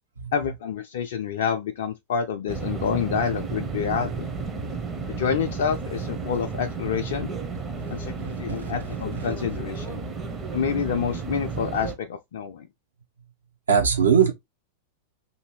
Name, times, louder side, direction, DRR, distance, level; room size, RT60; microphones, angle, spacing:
voice 1, 0.3-4.3 5.2-7.3 7.9-10.0 10.5-12.7, left 7 dB, 55° left, 0.3 m, -28 dB
sound 1, 2.5-12.0, right 4 dB, 20° right, 0.6 m, -32 dB
voice 2, 7.8-8.7 9.1-9.3 13.7-14.3, right 7 dB, 75° right, 0.7 m, -23 dB
2.7 x 2.6 x 3.0 m
figure-of-eight pair, 90°, 0 cm